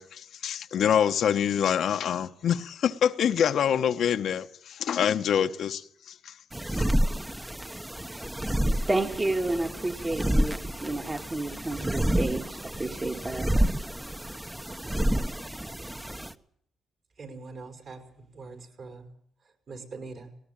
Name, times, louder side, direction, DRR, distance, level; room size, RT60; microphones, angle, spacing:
voice 1, 0.0-5.8 6.2-6.3 6.7-6.8, left 8 dB, 65° left, 1.0 m, -25 dB
sound 1, 6.5-16.3, right 1 dB, 10° right, 1.0 m, -29 dB
voice 2, 8.9-13.5, right 2 dB, 25° right, 1.8 m, -30 dB
voice 3, 17.2-18.0 18.3-19.1 19.7-20.3, right 3 dB, 55° right, 6.0 m, -42 dB
19.0 x 19.0 x 8.8 m
cardioid pair, 90°, 0 cm